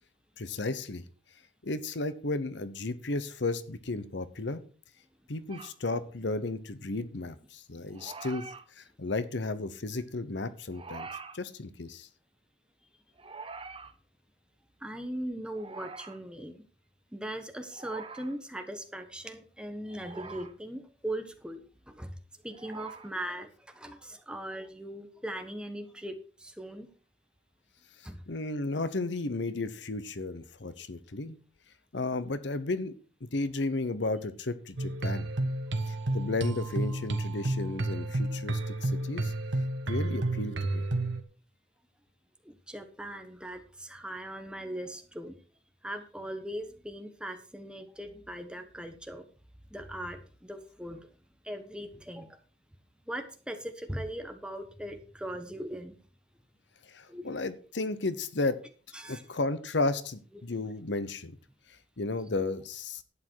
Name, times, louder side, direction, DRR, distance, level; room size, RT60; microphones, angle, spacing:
voice 1, 0.4-1.0 1.6-4.6 5.3-8.5 8.7-11.1 11.3-12.1 28.0-31.4 31.9-32.9 33.3-35.3 35.9-39.3 39.9-40.8 56.8-58.6 59.1-61.4 61.7-63.0, left 2 dB, 65° left, 13 dB, 0.9 m, -33 dB
sound 1, 5.5-5.7 7.9-8.6 10.7-11.4 13.2-13.9 15.5-16.2 17.7-18.3 19.9-20.5 22.5-23.1, right 4 dB, 30° right, 1.1 m, -44 dB
voice 2, 14.8-16.6 17.1-22.2 22.4-26.9 28.0-28.2 42.4-45.4 45.8-49.3 49.7-51.1 51.4-52.4 53.1-56.0 57.1-57.3 58.9-59.2 60.3-60.7, right 1 dB, 5° right, 6 dB, 1.2 m, -40 dB
sound 2, 34.8-41.2, right 2 dB, 70° right, 1.4 m, -31 dB
11.5 x 8.9 x 4.7 m, 0.40 s
head